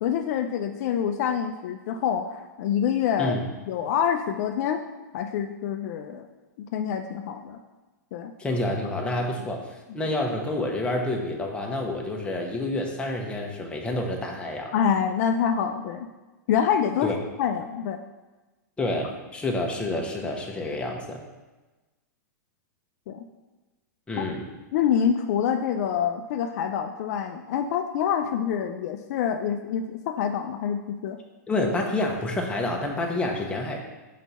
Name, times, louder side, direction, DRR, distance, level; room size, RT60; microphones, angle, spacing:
voice 1, 0.0-3.4 3.7-4.8 5.1-6.2 6.6-7.6 8.1-8.3 14.7-16.1 16.5-17.1 17.4-18.0 23.1-23.3 24.2-24.3 24.7-31.2, left 8 dB, 60° left, 6 dB, 0.4 m, -26 dB
voice 2, 8.4-14.7 17.0-17.1 18.8-21.2 24.1-24.4 31.5-33.8, left 2 dB, 10° left, 0 dB, 1.0 m, -28 dB
4.4 x 4.1 x 5.5 m, 1.2 s
hypercardioid pair, 115°, 10 cm